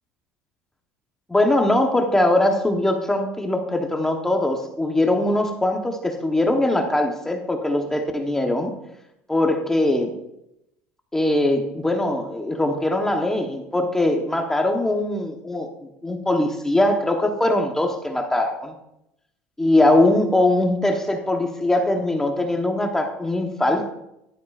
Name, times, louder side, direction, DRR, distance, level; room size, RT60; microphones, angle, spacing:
voice 1, 1.3-8.7 9.3-10.1 11.1-15.7 16.0-18.7 19.6-23.9, left 1 dB, 10° left, 4 dB, 1.0 m, -21 dB
11.0 x 10.5 x 2.4 m, 0.83 s
supercardioid pair, 115°, 5 cm